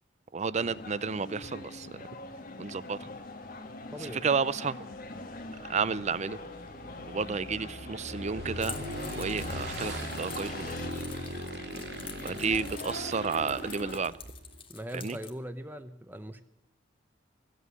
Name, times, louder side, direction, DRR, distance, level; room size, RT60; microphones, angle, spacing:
voice 1, 0.3-2.0 2.6-3.0 4.0-4.8 5.6-6.4 7.1-8.8 9.1-10.8 12.2-14.2 14.9-15.2, right 5 dB, 35° right, 18 dB, 0.5 m, -31 dB
sound 1, 0.6-14.0, left 2 dB, 50° left, 1.7 m, -43 dB
voice 2, 3.9-4.2 14.7-16.4, equal, 10° right, 8 dB, 0.8 m, -40 dB
Motorcycle / Engine, 4.9-14.6, right 1 dB, 60° right, 2.1 m, -41 dB
Keys jangling, 8.6-15.3, left 7 dB, 30° left, 1.6 m, -47 dB
16.0 x 8.3 x 9.5 m, 0.87 s
head